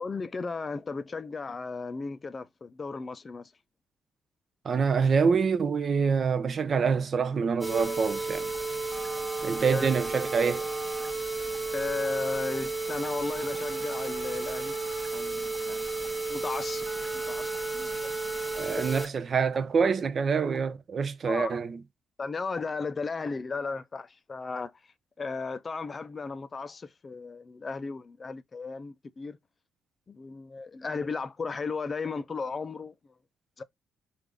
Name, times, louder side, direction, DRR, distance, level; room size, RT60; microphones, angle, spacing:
voice 1, 0.0-3.5 9.6-9.9 11.7-14.8 15.1-16.9 17.1-18.1 18.8-18.9 21.3-21.6 22.2-29.4 30.1-33.0 33.6-33.7, left 4 dB, 35° left, 0.4 m, -35 dB
voice 2, 4.6-8.5 9.4-10.7 18.6-21.8, right 5 dB, 45° right, 0.5 m, -26 dB
sound 1, 7.6-19.1 19.5-19.6 20.0-20.1 20.5-20.6, right 3 dB, 10° right, 0.8 m, -33 dB
3.3 x 2.5 x 3.7 m
cardioid pair, 90°, 0 cm